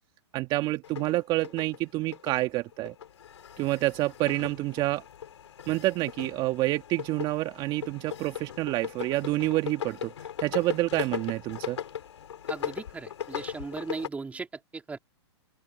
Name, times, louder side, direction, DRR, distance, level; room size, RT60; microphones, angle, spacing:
voice 1, 0.3-2.9 3.6-5.0 5.7-10.1 10.4-11.8, right 18 dB, 35° right, 1.7 m, -28 dB
sound 1, 0.8-14.1, left 9 dB, 75° left, 3.1 m, -39 dB
voice 2, 12.5-14.5 14.7-15.0, right 4 dB, 10° right, 3.0 m, -37 dB
open air
hypercardioid pair, 130°, 15 cm